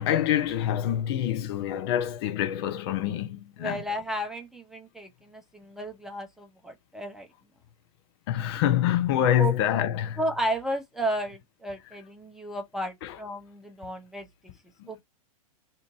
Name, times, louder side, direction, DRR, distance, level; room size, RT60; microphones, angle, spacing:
voice 1, 0.0-3.8 8.3-10.2 13.0-13.2 14.8-14.9, left 11 dB, 45° left, 0.6 m, -26 dB
voice 2, 3.6-7.3 9.4-9.5 10.2-14.3 14.9-15.0, right 1 dB, ahead, 0.7 m, -33 dB
2.8 x 2.6 x 3.5 m
figure-of-eight pair, 100°, 19 cm